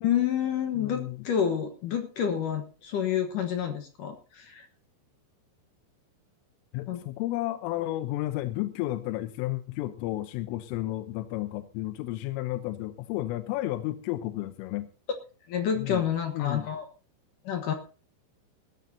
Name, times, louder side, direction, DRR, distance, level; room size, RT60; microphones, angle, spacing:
voice 1, 0.0-4.7 6.9-7.0 15.5-16.9 17.4-17.7, left 9 dB, 70° left, 6 dB, 2.0 m, -29 dB
voice 2, 0.8-1.2 6.7-14.9 15.8-16.0 16.3-16.7, left 16 dB, 90° left, 10 dB, 3.4 m, -32 dB
19.0 x 14.5 x 2.8 m, 0.35 s
omnidirectional pair, 5.7 m